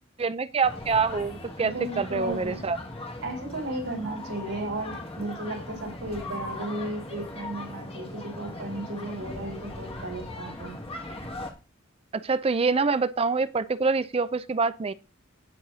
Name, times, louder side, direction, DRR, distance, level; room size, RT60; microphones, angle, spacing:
voice 1, 0.2-2.8 12.1-14.9, right 4 dB, 30° right, 14 dB, 0.4 m, -26 dB
sound 1, 0.6-11.5, left 2 dB, 30° left, 2.0 m, -39 dB
voice 2, 1.6-2.6 3.2-10.7, right 1 dB, 75° right, 1 dB, 4.6 m, -34 dB
18.5 x 7.7 x 2.8 m, 0.31 s
head